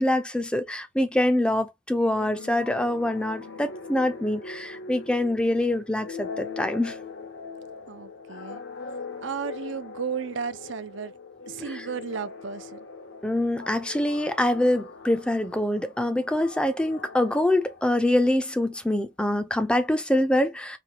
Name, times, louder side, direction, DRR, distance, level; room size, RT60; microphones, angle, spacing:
voice 1, 0.0-7.0 11.7-11.9 13.2-20.8, left 1 dB, 5° left, 0.5 m, -25 dB
sound 1, 2.0-18.4, left 4 dB, 55° left, 0.8 m, -41 dB
voice 2, 7.9-8.6 9.2-11.1 11.5-12.9, right 6 dB, 60° right, 0.5 m, -34 dB
4.2 x 2.2 x 2.8 m
head